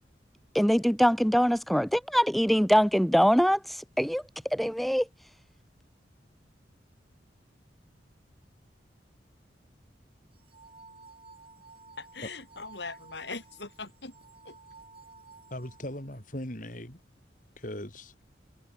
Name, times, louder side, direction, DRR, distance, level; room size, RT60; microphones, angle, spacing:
voice 1, 0.5-4.2 4.5-5.1, equal, ahead, 0.6 m, -23 dB
sound 1, 10.3-16.2, right 4 dB, 30° right, 4.6 m, -54 dB
voice 2, 12.0-14.1 14.4-14.5, left 4 dB, 75° left, 6.4 m, -40 dB
voice 3, 15.5-17.0 17.6-18.1, left 1 dB, 45° left, 5.6 m, -39 dB
head